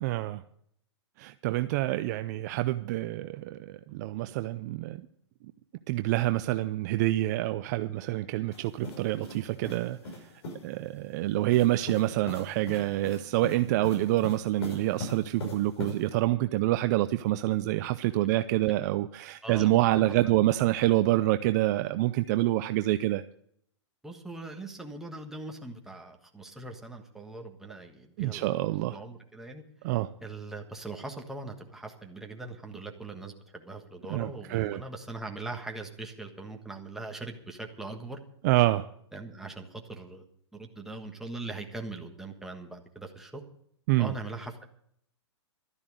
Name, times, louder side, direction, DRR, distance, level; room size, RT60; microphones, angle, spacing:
voice 1, 0.0-0.4 1.2-5.1 5.9-10.0 10.6-23.2 28.2-29.0 29.8-30.1 34.1-34.8 38.4-38.9 43.9-44.1, right 16 dB, 35° right, 11 dB, 0.5 m, -27 dB
sound 1, 8.5-10.7 11.5-16.2, left 2 dB, 60° left, 6.2 m, -41 dB
voice 2, 19.9-20.3 24.0-28.6 28.9-38.2 39.1-40.2 40.5-43.4 44.0-44.6, right 2 dB, 5° right, 2 dB, 1.4 m, -41 dB
12.5 x 10.5 x 6.5 m, 0.68 s
hypercardioid pair, 140°, 15 cm